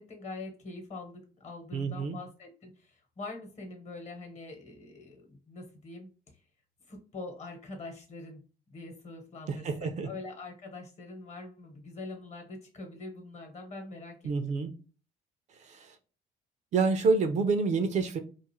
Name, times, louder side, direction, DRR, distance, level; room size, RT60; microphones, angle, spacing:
voice 1, 0.0-6.4 6.9-8.4 8.7-14.6, left 3 dB, 40° left, 1.0 m, -44 dB
voice 2, 1.7-2.2 9.5-10.1 14.2-14.7 15.6-15.9 16.7-18.2, right 4 dB, 45° right, 0.4 m, -28 dB
2.5 x 2.4 x 2.9 m
cardioid pair, 110°, 17 cm